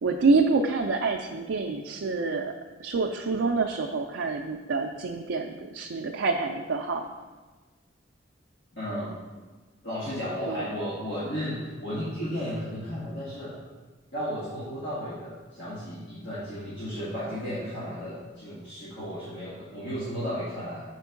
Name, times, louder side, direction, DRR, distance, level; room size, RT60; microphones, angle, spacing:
voice 1, 0.0-2.5 2.8-7.1 10.5-10.6, right 3 dB, 90° right, 1 dB, 0.4 m, -27 dB
voice 2, 8.7-9.2 9.8-13.6 14.1-20.8, equal, 65° left, -10 dB, 1.8 m, -34 dB
5.2 x 4.5 x 5.8 m, 1.3 s
head